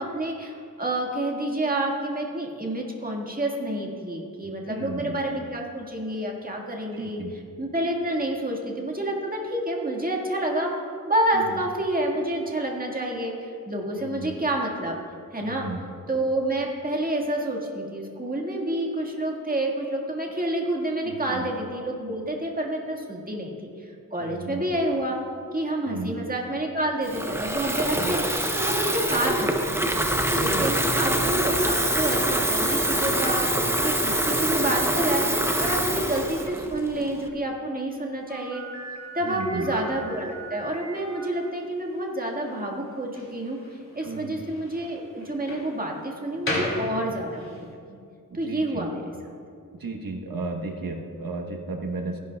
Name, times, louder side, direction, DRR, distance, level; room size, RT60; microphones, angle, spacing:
voice 1, 0.0-7.2 7.6-10.7 11.1-15.0 15.3-15.7 16.1-25.2 25.5-28.2 28.6-29.5 29.9-30.0 30.4-35.3 35.6-38.6 39.1-43.6 43.9-48.0 48.3-49.0, right 1 dB, 25° right, -1 dB, 1.8 m, -28 dB
voice 2, 4.4-5.2 6.9-7.3 11.3-11.6 14.0-14.3 15.4-15.8 21.0-21.5 24.2-24.6 25.8-26.2 27.8-28.2 30.3-30.6 35.8-36.0 39.2-39.7 44.0-44.4 48.3-48.9 49.7-52.2, right 3 dB, 85° right, 3 dB, 1.1 m, -35 dB
Water tap faucet / Fill (with liquid), 27.0-37.3, right 1 dB, 5° right, 0.7 m, -25 dB
Slam, 38.3-47.6, left 1 dB, 35° left, 2.7 m, -37 dB
16.0 x 11.0 x 2.3 m, 2.3 s
wide cardioid pair, 85°, 34 cm